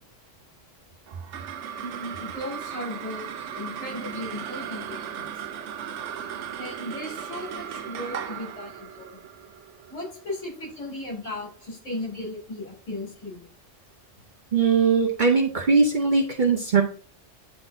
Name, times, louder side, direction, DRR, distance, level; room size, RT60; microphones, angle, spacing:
sound 1, 1.1-11.7, right 8 dB, 75° right, 0.9 m, -37 dB
voice 1, 1.8-5.5 6.6-9.2 9.9-13.5, left 1 dB, 85° left, -4 dB, 3.7 m, -36 dB
voice 2, 14.5-16.8, right 4 dB, 50° right, 1 dB, 0.7 m, -20 dB
9.7 x 3.8 x 2.6 m, 0.44 s
omnidirectional pair, 1.3 m